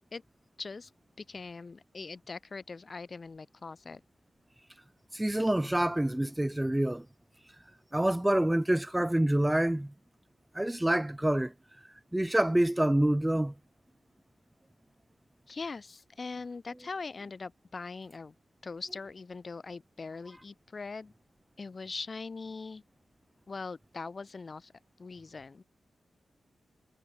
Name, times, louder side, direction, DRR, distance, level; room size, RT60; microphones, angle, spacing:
voice 1, 0.6-0.9 1.2-4.0 15.5-18.3 18.6-21.1 21.6-22.8 23.5-24.7 25.0-25.6, left 4 dB, 40° left, 6.1 m, -41 dB
voice 2, 5.1-7.1 7.9-9.9 10.5-11.5 12.1-13.5, right 1 dB, 10° right, 0.9 m, -27 dB
cardioid pair, 95°, 0 cm